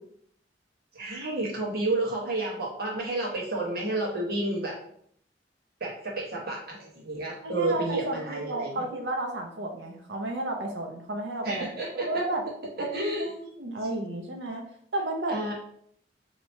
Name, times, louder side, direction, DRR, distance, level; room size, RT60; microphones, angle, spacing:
voice 1, 0.9-4.8 5.8-8.7 11.4-12.2 12.8-13.3 15.3-15.5, right 2 dB, 60° right, -2 dB, 1.2 m, -30 dB
voice 2, 7.4-11.7 12.0-12.4 12.8-14.6 14.9-15.4, right 2 dB, 75° right, 2 dB, 0.6 m, -32 dB
2.9 x 2.8 x 4.4 m, 0.66 s
head